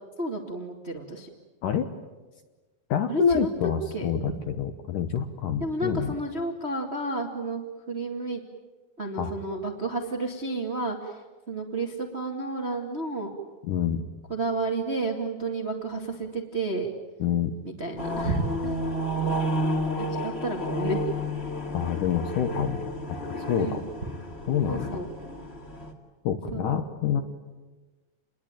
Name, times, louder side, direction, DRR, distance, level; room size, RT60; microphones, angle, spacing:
voice 1, 0.2-1.3 3.1-4.1 5.6-8.4 9.0-11.1 11.5-13.3 14.3-16.9 17.6-18.8 20.0-21.0 23.6-23.8 24.7-25.1 26.5-26.8, right 2 dB, 25° right, 2 dB, 1.4 m, -31 dB
voice 2, 2.9-6.2 9.2-9.3 13.6-14.0 17.2-17.5 21.7-22.8 23.5-23.8 24.5-25.0 26.2-27.2, left 8 dB, 65° left, 7 dB, 2.2 m, -27 dB
sound 1, 18.0-25.9, equal, 20° left, 1.8 m, -31 dB
28.5 x 21.5 x 9.0 m, 1.3 s
omnidirectional pair, 4.7 m